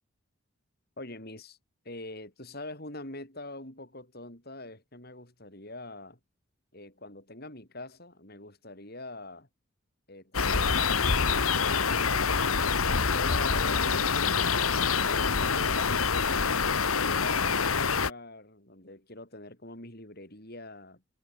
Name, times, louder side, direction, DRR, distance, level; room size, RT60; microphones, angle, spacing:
voice 1, 1.0-1.6 1.8-6.2 6.7-9.5 10.1-14.7 15.0-21.0, left 2 dB, 45° left, 7.7 m, -44 dB
sound 1, 10.3-18.1, left 5 dB, 90° left, 1.6 m, -26 dB
head